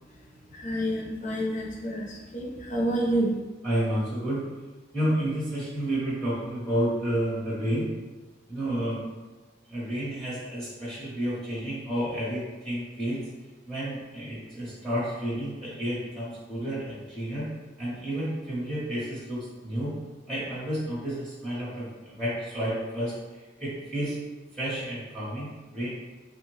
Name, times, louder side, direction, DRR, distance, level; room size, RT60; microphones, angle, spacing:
voice 1, 0.5-3.3, right 1 dB, 35° left, -2 dB, 0.5 m, -28 dB
voice 2, 3.6-4.5 4.9-7.9 8.5-9.0 9.7-13.2 13.7-17.5 17.8-19.9 20.3-24.2 24.5-25.9, right 1 dB, 5° left, -10 dB, 0.9 m, -30 dB
3.2 x 2.1 x 3.1 m, 1.2 s
head